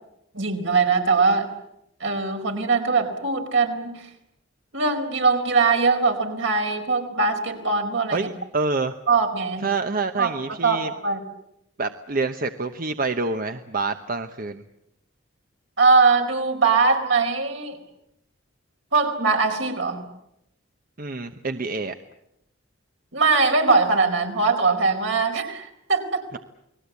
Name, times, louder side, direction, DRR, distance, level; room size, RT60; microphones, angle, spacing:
voice 1, 0.3-1.5 2.0-4.1 4.7-8.3 9.1-9.7 10.2-10.3 10.6-11.2 15.8-17.8 18.9-20.0 23.1-26.2, right 4 dB, 75° right, 3 dB, 4.6 m, -21 dB
voice 2, 8.1-8.9 9.6-10.9 11.8-14.6 21.0-21.9 26.3-26.4, right 3 dB, 45° right, 8 dB, 1.0 m, -27 dB
29.5 x 20.0 x 8.3 m, 0.82 s
head